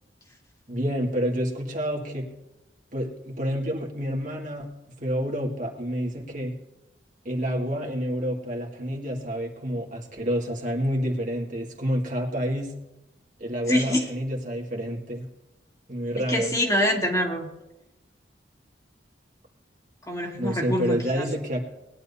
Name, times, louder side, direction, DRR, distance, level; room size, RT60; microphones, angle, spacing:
voice 1, 0.7-2.3 2.9-4.7 5.0-6.5 7.2-12.7 13.4-15.3 15.9-16.5 20.4-21.6, equal, 50° right, 0 dB, 2.2 m, -28 dB
voice 2, 13.7-14.1 16.3-17.5 20.1-21.3, left 1 dB, 20° left, 0 dB, 2.2 m, -25 dB
20.0 x 10.5 x 2.8 m, 0.99 s
head